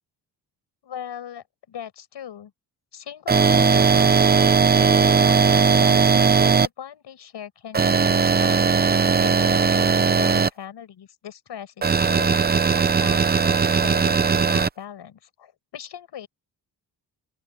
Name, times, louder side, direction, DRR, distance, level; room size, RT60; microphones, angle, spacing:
voice 1, 0.8-2.5 2.9-16.3, left 9 dB, 85° left, 5.5 m, -39 dB
sound 1, 3.3-6.7 7.7-10.5 11.8-14.7, right 5 dB, 25° right, 0.6 m, -18 dB
open air
wide cardioid pair, 175°, 41 cm